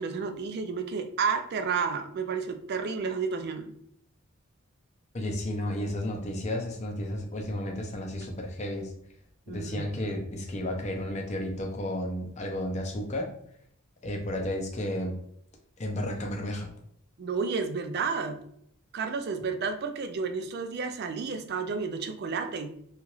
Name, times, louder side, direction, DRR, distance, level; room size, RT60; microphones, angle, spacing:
voice 1, 0.0-3.7 9.5-9.9 17.2-18.4 18.9-22.7, right 5 dB, 50° right, 8 dB, 0.3 m, -31 dB
voice 2, 5.1-8.9 9.5-13.3 14.0-15.1 15.8-16.7, left 1 dB, 30° left, 2 dB, 0.5 m, -32 dB
2.8 x 2.4 x 3.0 m, 0.68 s
head